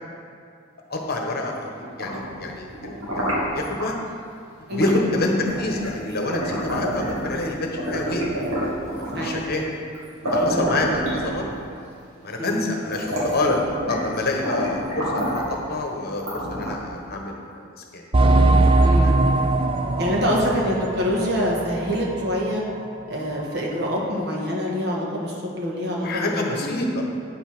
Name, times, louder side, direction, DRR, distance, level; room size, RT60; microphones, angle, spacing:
voice 1, 0.9-4.0 4.7-8.3 9.0-9.6 10.2-11.6 12.2-13.6 13.9-17.7 17.9-18.1 19.0-19.1 20.3-20.7 26.0-27.1, left 2 dB, 50° left, 1 dB, 1.2 m, -27 dB
sound 1, 1.8-3.9 4.8-5.0 5.4-7.4 7.8-9.4 9.9-10.0 10.2-11.7 12.4-12.5 12.8-14.1 14.4-15.6 16.2-17.0, equal, 85° right, 2.3 m, -28 dB
voice 2, 4.7-5.1 9.1-9.5 10.4-10.8 12.4-12.8 18.8-19.2 20.0-22.6 23.1-26.7, equal, 50° right, -3 dB, 1.6 m, -26 dB
sound 2, 18.1-22.4 22.7-22.8 23.4-23.5, right 2 dB, 25° right, 0.4 m, -20 dB
9.5 x 5.4 x 6.1 m, 2.3 s
head